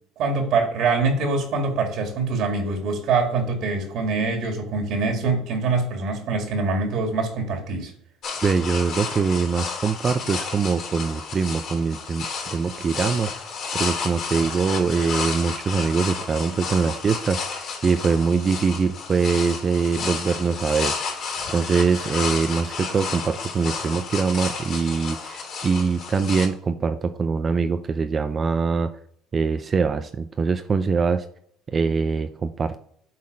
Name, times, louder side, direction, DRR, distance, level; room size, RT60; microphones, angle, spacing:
voice 1, 0.2-7.9, right 4 dB, 60° right, 3 dB, 2.0 m, -24 dB
sound 1, 8.2-26.5, left 5 dB, 55° left, 3.6 m, -31 dB
voice 2, 8.4-13.4 13.7-21.2 21.5-28.9 29.3-31.2 31.7-32.8, right 5 dB, 30° right, 9 dB, 0.4 m, -23 dB
8.5 x 4.2 x 4.8 m, 0.64 s
cardioid pair, 115°, 0 cm